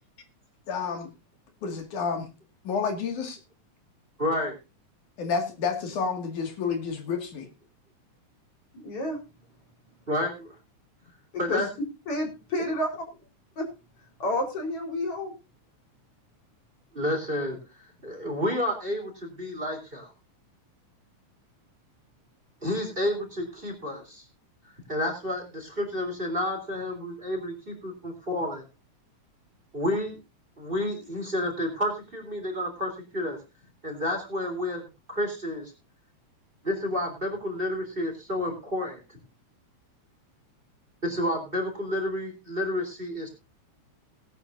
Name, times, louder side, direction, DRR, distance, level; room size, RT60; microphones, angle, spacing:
voice 1, 0.7-1.1 1.6-2.3 2.7-3.4 5.2-7.5, left 5 dB, 80° left, 5 dB, 3.6 m, -29 dB
voice 2, 4.2-4.5 10.1-10.5 11.4-11.7 16.9-17.6 18.0-20.1 22.6-24.2 24.9-28.6 29.7-30.2 30.6-33.4 33.8-34.8 35.1-35.7 36.6-39.0 41.0-43.3, left 1 dB, 15° right, 4 dB, 3.4 m, -30 dB
voice 3, 8.8-9.2 11.5-11.7 12.1-12.9 13.6-13.7 14.2-15.3, left 1 dB, 50° left, 3 dB, 5.0 m, -29 dB
18.5 x 11.5 x 2.6 m, 0.28 s
omnidirectional pair, 3.5 m